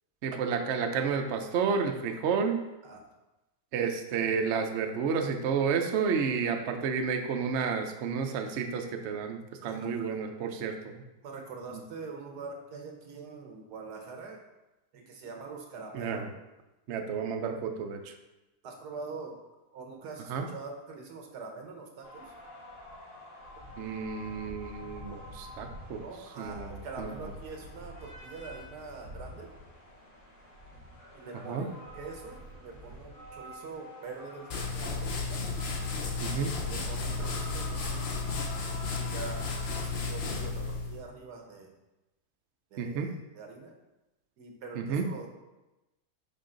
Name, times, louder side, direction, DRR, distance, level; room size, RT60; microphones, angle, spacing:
voice 1, 0.2-2.6 3.7-11.0 15.9-16.3 16.9-18.0 20.3-20.4 23.8-26.0 26.4-26.7 27.0-27.1 31.5-31.7 36.2-36.5 42.8-43.1 44.9-45.1, right 6 dB, 60° right, 4 dB, 0.8 m, -31 dB
voice 2, 9.6-10.3 11.2-14.4 14.9-16.3 18.6-19.4 19.7-22.3 26.0-29.5 31.1-35.4 36.6-38.2 38.9-41.7 42.7-43.7 44.4-45.4, right 4 dB, 90° right, 3 dB, 1.5 m, -44 dB
sound 1, 22.0-39.8, left 1 dB, 85° left, 2.6 m, -47 dB
sound 2, 34.5-41.0, left 4 dB, 50° left, 0.8 m, -33 dB
5.5 x 4.9 x 3.8 m, 1.0 s
omnidirectional pair, 1.7 m